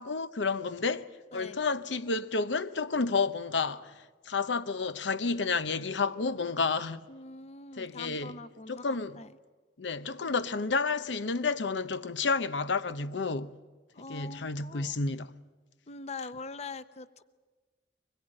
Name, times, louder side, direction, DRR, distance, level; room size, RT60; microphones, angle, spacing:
voice 1, 0.0-7.0 7.8-8.4 8.7-9.2 9.8-13.6 14.1-15.3, left 4 dB, 90° left, 0.8 m, -31 dB
voice 2, 7.1-9.3 13.9-15.0 15.9-17.2, left 3 dB, 40° left, 0.8 m, -43 dB
24.0 x 21.0 x 8.9 m
head